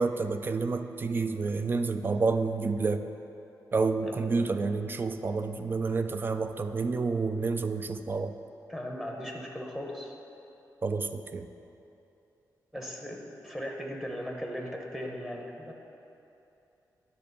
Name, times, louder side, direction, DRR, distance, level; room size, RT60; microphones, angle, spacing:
voice 1, 0.0-3.0 3.7-8.3 10.8-11.5, right 4 dB, 30° right, 8 dB, 0.3 m, -29 dB
voice 2, 8.7-10.1 12.7-15.7, equal, 5° right, 0 dB, 0.8 m, -38 dB
9.7 x 3.6 x 6.7 m, 2.8 s
wide cardioid pair, 130°, 7 cm